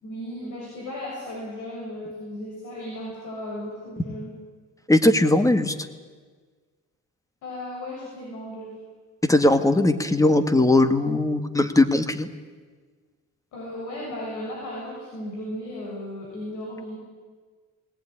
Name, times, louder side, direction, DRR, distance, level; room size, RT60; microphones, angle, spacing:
voice 1, 0.0-4.4 7.4-8.7 13.5-17.0, left 1 dB, 80° left, -3 dB, 6.5 m, -35 dB
voice 2, 4.9-5.8 9.2-12.3, left 2 dB, 10° left, 10 dB, 1.8 m, -19 dB
20.0 x 18.5 x 10.0 m, 1.5 s
cardioid pair, 90°, 30 cm